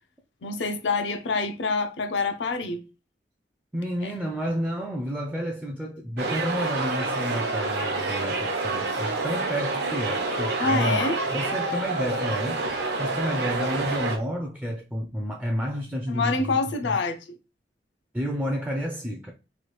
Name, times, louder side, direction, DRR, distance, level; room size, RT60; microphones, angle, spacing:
voice 1, 0.4-2.8 4.0-4.1 10.6-11.2 16.1-17.2, left 3 dB, 80° left, 0.5 m, -26 dB
voice 2, 3.7-12.6 13.0-16.6 18.1-19.3, equal, 10° right, 0.4 m, -30 dB
sound 1, 6.2-14.2, right 3 dB, 65° right, 0.7 m, -28 dB
3.2 x 2.3 x 3.0 m
head